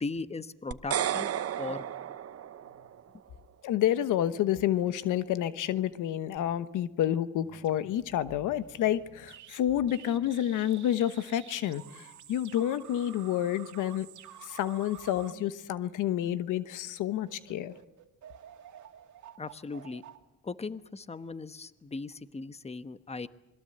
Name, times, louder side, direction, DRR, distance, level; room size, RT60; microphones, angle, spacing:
voice 1, 0.0-1.3 1.6-2.2 19.4-20.0 20.4-23.3, left 3 dB, 20° left, 13 dB, 1.1 m, -38 dB
sound 1, 0.7-3.0, right 10 dB, 50° right, 0.9 m, -33 dB
voice 2, 3.6-14.1 14.4-17.7, left 11 dB, 85° left, 14 dB, 1.1 m, -29 dB
sound 2, 7.4-16.3 16.8-17.0 17.3-21.2, right 10 dB, 70° right, 2.3 m, -51 dB
26.5 x 21.5 x 7.8 m, 0.90 s
cardioid pair, 90°, 30 cm